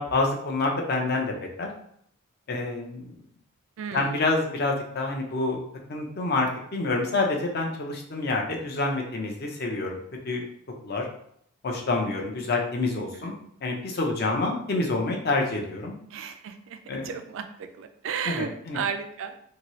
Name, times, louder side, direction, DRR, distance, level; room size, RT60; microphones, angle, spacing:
voice 1, 0.0-1.7 2.5-3.2 3.9-5.6 5.9-10.4 10.8-11.1 11.6-13.3 13.6-16.0 16.9-17.1 18.2-18.8, left 2 dB, 50° left, 1 dB, 0.6 m, -27 dB
voice 2, 3.8-4.1 13.1-13.3 16.1-16.8 17.0-19.4, right 7 dB, 65° right, 7 dB, 0.3 m, -33 dB
2.8 x 2.7 x 3.0 m, 0.67 s
head